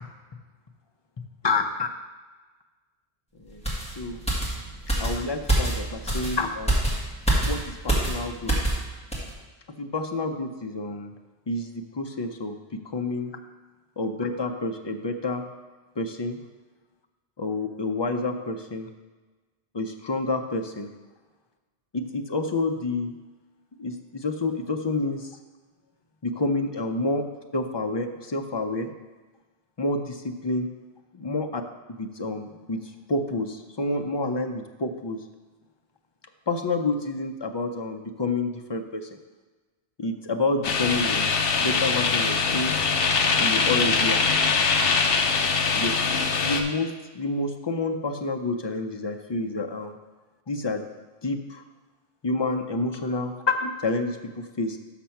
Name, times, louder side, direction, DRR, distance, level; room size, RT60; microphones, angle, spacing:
voice 1, 1.4-1.9 3.4-3.6 4.0-4.2 5.0-6.8 7.5-8.6 9.8-11.1 11.5-13.4 14.0-15.5 16.0-16.4 17.4-18.9 19.7-20.9 21.9-23.2 23.8-25.3 26.2-28.9 29.8-30.7 31.1-31.6 31.9-35.2 36.5-39.2 40.0-41.3 41.6-42.8 43.4-44.2 45.7-46.0 46.4-49.9 50.5-50.9 51.2-51.6 52.2-54.8, left 2 dB, 40° left, 5 dB, 0.4 m, -29 dB
sound 1, 3.6-8.8 9.1-9.3, right 1 dB, 5° left, 1.6 m, -26 dB
sound 2, 40.6-46.6, left 5 dB, 65° left, 0.9 m, -23 dB
6.3 x 5.9 x 5.7 m, 1.3 s
omnidirectional pair, 1.1 m